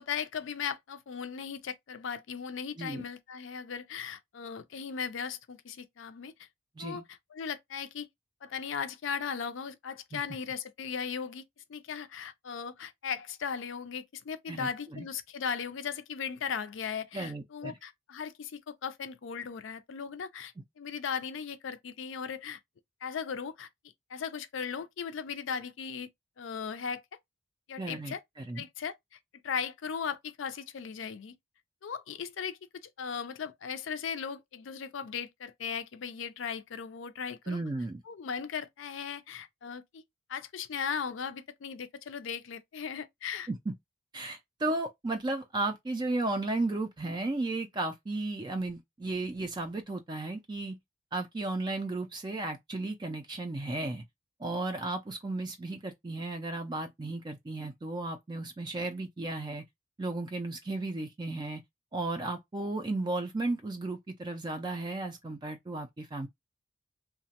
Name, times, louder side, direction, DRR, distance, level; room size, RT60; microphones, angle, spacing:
voice 1, 0.0-6.3 6.8-8.1 8.4-11.4 11.7-22.6 23.0-23.7 24.1-26.1 26.4-27.0 27.7-28.2 28.5-29.2 29.4-31.3 31.8-32.6 33.0-37.6 38.1-40.0 40.3-43.5, left 6 dB, 70° left, 0.4 m, -37 dB
voice 2, 14.5-15.1 17.1-17.8 27.8-28.6 37.5-38.0 43.5-43.7 44.1-50.8 51.1-54.0 54.4-59.6 60.0-61.6 61.9-66.3, right 2 dB, 20° right, 0.3 m, -34 dB
2.8 x 2.1 x 2.8 m
head